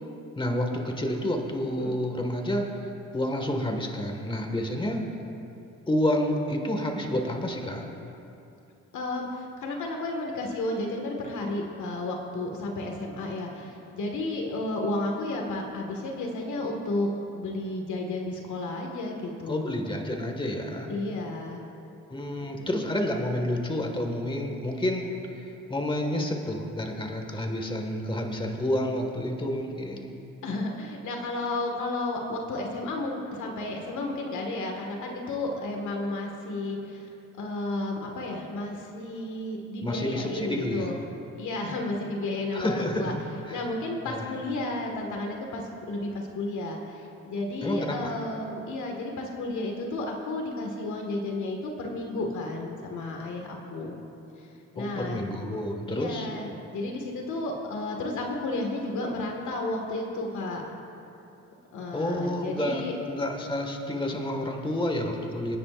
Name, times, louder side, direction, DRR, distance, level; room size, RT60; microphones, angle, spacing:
voice 1, 0.4-2.7 3.1-5.0 5.9-7.8 19.5-20.9 22.1-25.1 25.7-30.2 39.8-40.9 42.5-43.6 44.1-44.4 47.6-48.1 54.8-56.3 61.9-65.6, left 1 dB, 15° left, 2 dB, 1.8 m, -29 dB
voice 2, 8.9-17.1 17.3-19.7 20.9-21.6 22.5-22.7 30.4-37.1 37.4-41.0 41.4-43.1 43.5-53.9 54.4-55.3 55.9-60.6 61.7-63.0, left 2 dB, 75° left, 1 dB, 1.9 m, -32 dB
27.0 x 9.7 x 2.6 m, 2.8 s
cardioid pair, 90°, 30 cm